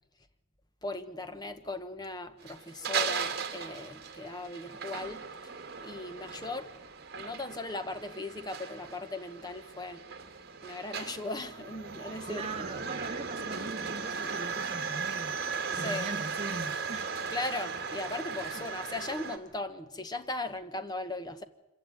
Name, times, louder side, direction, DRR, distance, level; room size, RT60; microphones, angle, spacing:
voice 1, 0.8-6.7 7.1-10.0 10.6-12.8 15.7-16.1 17.3-21.4, left 2 dB, 20° left, 1.1 m, -38 dB
sound 1, 2.4-19.4, right 5 dB, 55° right, 2.2 m, -37 dB
voice 2, 12.3-15.4 15.7-17.1 18.4-18.6, right 3 dB, 30° right, 0.8 m, -40 dB
25.5 x 15.5 x 9.2 m
head